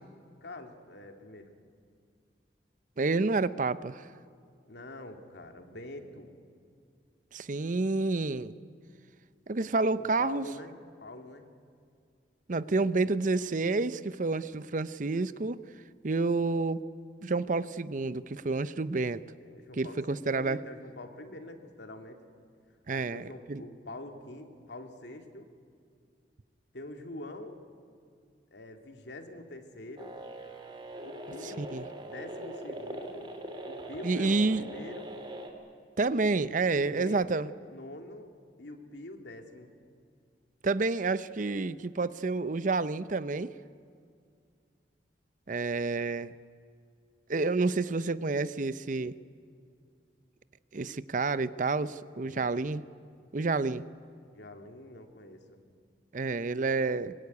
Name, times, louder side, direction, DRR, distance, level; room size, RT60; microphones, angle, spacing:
voice 1, 0.4-1.5 4.7-6.3 10.0-11.5 19.4-22.2 22.9-25.5 26.7-27.6 28.5-30.1 31.0-31.7 32.0-33.3 33.6-35.1 36.7-38.3 38.6-39.8 52.2-52.5 54.3-55.6, left 1 dB, 75° left, 5 dB, 2.4 m, -45 dB
voice 2, 3.0-4.1 7.3-8.5 9.5-10.5 12.5-15.6 16.0-16.8 17.2-19.2 19.7-20.6 22.9-23.6 31.4-31.8 34.0-34.6 36.0-37.5 40.6-43.5 45.5-46.3 47.3-49.1 50.7-52.8 53.3-53.9 56.1-57.1, right 3 dB, 45° right, 15 dB, 0.6 m, -29 dB
sound 1, 30.0-35.5, right 1 dB, 25° right, 2.7 m, -42 dB
24.0 x 20.5 x 9.6 m, 2.3 s
head